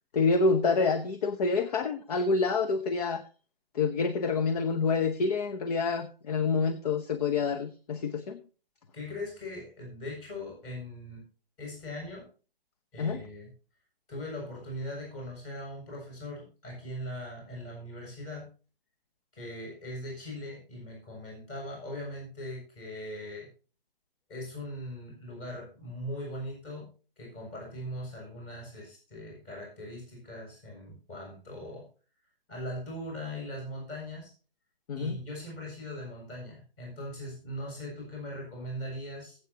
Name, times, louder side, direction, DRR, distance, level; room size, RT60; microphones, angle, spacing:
voice 1, 0.1-3.2 3.7-8.4 13.0-13.2 34.9-35.2, left 4 dB, 40° left, 10 dB, 0.9 m, -27 dB
voice 2, 8.9-11.2 11.6-12.3 12.9-13.5 14.1-18.5 19.3-23.5 24.3-26.9 27.2-31.9 32.5-34.3 35.0-39.4, left 1 dB, 25° left, -1 dB, 7.6 m, -40 dB
20.5 x 8.2 x 2.9 m, 0.36 s
figure-of-eight pair, 135°, 29 cm